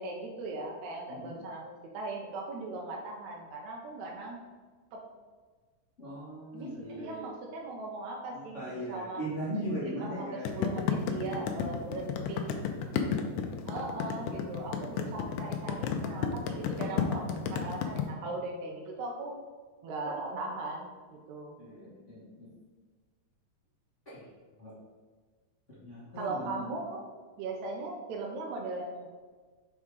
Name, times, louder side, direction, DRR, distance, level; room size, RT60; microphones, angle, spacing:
voice 1, 0.0-4.4 4.9-5.0 6.5-9.3 9.8-12.5 13.7-19.3 19.8-20.9 21.3-21.6 26.2-27.1 27.4-29.1, right 2 dB, 80° right, -1 dB, 1.7 m, -39 dB
voice 2, 6.0-7.2 8.3-10.5 11.2-11.8 13.3-13.8 21.6-22.5 24.0-24.2 24.6-24.7 25.8-26.7, equal, 55° left, -9 dB, 0.8 m, -39 dB
sound 1, 10.5-18.0, left 8 dB, 85° left, 1.7 m, -31 dB
6.9 x 3.7 x 4.6 m, 1.4 s
omnidirectional pair, 4.2 m